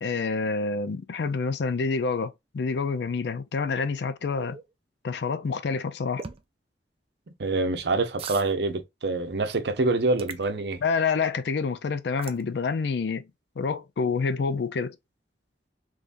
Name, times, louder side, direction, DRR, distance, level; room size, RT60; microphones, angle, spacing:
voice 1, 0.0-4.6 5.0-6.2 10.8-13.2 13.6-15.0, left 4 dB, 70° left, 0.4 m, -27 dB
sound 1, 4.4-4.6 6.2-6.4 8.2-8.5 10.2-10.5 12.2-12.4, right 5 dB, 35° right, 0.4 m, -37 dB
voice 2, 7.4-10.8, right 3 dB, 65° right, 0.7 m, -26 dB
3.6 x 3.1 x 2.5 m
head